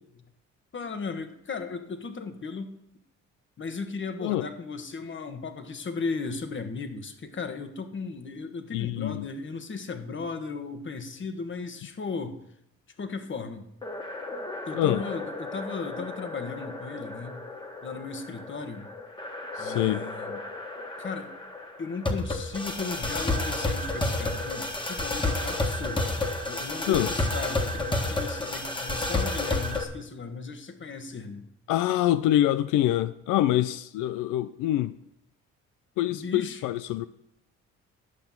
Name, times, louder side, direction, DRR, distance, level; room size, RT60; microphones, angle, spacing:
voice 1, 0.7-2.7 3.6-12.4 13.0-13.7 14.6-17.4 17.8-18.9 19.6-20.4 21.0-21.3 21.8-26.2 26.5-31.5 36.1-36.7, left 4 dB, 40° left, 1.4 m, -36 dB
voice 2, 8.7-9.3 14.8-15.0 19.6-20.0 26.8-27.1 31.7-34.9 36.0-37.1, left 13 dB, 90° left, 0.5 m, -25 dB
sound 1, 13.8-29.8, left 2 dB, 15° left, 1.6 m, -31 dB
11.5 x 5.8 x 7.1 m
cardioid pair, 90°, 30 cm